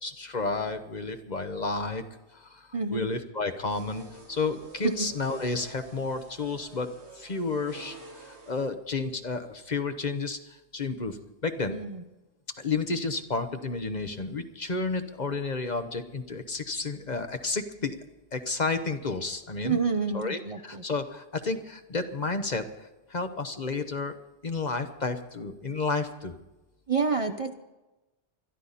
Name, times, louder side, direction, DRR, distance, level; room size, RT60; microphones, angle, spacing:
voice 1, 0.0-2.0 2.3-11.8 12.6-18.0 18.3-19.8 20.1-24.1 24.4-26.3, left 3 dB, 45° left, 8 dB, 1.1 m, -31 dB
voice 2, 2.7-3.1 4.8-5.1 11.6-12.0 19.6-20.8 26.9-27.5, right 5 dB, 35° right, 7 dB, 0.7 m, -28 dB
sound 1, 3.7-8.7, right 3 dB, 80° right, 1.8 m, -49 dB
21.5 x 13.0 x 4.1 m, 1.0 s
omnidirectional pair, 1.1 m